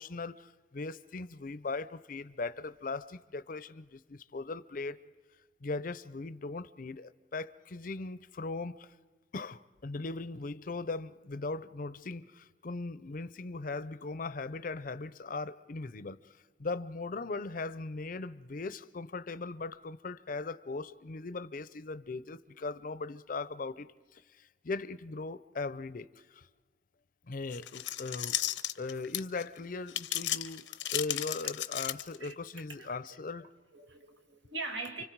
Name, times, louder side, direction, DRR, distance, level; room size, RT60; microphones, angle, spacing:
voice 1, 0.0-5.0 5.6-8.9 9.3-16.2 16.6-26.5 27.3-28.4 28.8-33.5, left 3 dB, 50° left, 0.6 m, -39 dB
sound 1, 27.5-29.4 29.9-32.3, left 13 dB, 85° left, 0.8 m, -34 dB
voice 2, 32.8-35.0, right 3 dB, 85° right, 2.4 m, -42 dB
30.0 x 24.5 x 4.6 m
head